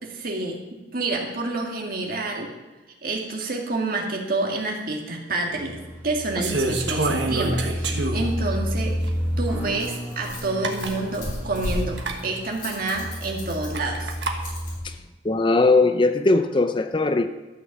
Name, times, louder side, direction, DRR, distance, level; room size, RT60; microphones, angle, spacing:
voice 1, 0.0-2.5 3.0-5.8 6.0-9.0 9.4-12.0 12.2-14.1, right 2 dB, 55° right, 1 dB, 2.0 m, -28 dB
sound 1, 5.3-14.8, equal, 15° right, 2.5 m, -31 dB
sound 2, 6.4-8.4 9.0-9.1 10.3-10.4 10.6-11.0 11.9-12.2 13.7-14.4, right 2 dB, 75° right, 1.4 m, -26 dB
Rattle, 8.8-14.8, left 1 dB, 50° left, 4.1 m, -36 dB
voice 2, 15.2-17.3, left 3 dB, 25° left, 9 dB, 0.5 m, -19 dB
13.0 x 6.2 x 7.1 m, 1.1 s
head